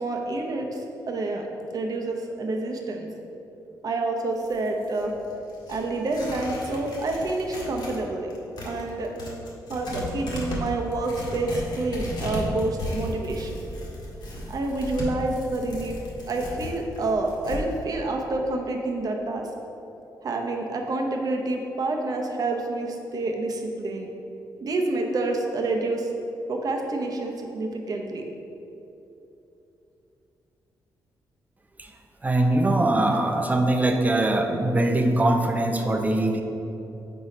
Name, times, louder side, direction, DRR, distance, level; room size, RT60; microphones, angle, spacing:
voice 1, 0.0-1.5 1.7-3.1 3.8-5.1 5.7-8.3 8.6-9.1 9.7-13.5 14.5-16.0 16.3-19.5 20.2-24.1 24.6-26.1 26.5-28.2, right 2 dB, 55° right, 2 dB, 0.8 m, -28 dB
Tearing, 4.3-8.0 8.3-17.6, left 1 dB, 70° left, 1.4 m, -35 dB
voice 2, 32.2-36.4, right 1 dB, 20° right, 4 dB, 0.6 m, -22 dB
4.6 x 4.2 x 5.1 m, 2.9 s
cardioid pair, 80°, 8 cm